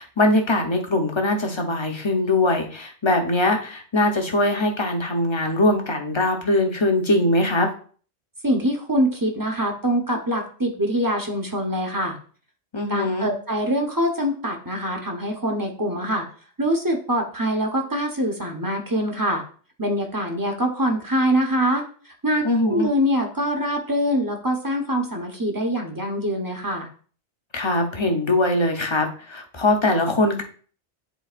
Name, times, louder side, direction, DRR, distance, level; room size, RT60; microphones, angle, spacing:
voice 1, 0.0-7.7 12.7-13.3 22.4-22.9 27.5-30.4, left 1 dB, 25° left, 3 dB, 1.0 m, -21 dB
voice 2, 8.4-12.2 12.9-16.3 16.6-19.4 19.8-26.9, equal, 20° right, 1 dB, 1.0 m, -24 dB
10.0 x 4.1 x 2.5 m, 0.43 s
omnidirectional pair, 1.2 m